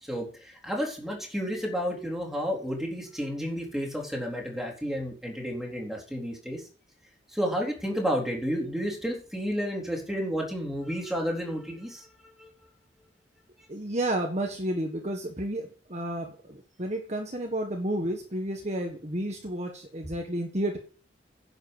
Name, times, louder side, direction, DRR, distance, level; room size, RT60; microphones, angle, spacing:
voice 1, 0.0-6.6 7.3-12.1 12.4-12.5, equal, ahead, -1 dB, 3.9 m, -31 dB
voice 2, 13.7-20.8, right 1 dB, 35° right, 3 dB, 1.5 m, -31 dB
10.5 x 7.9 x 7.2 m, 0.38 s
head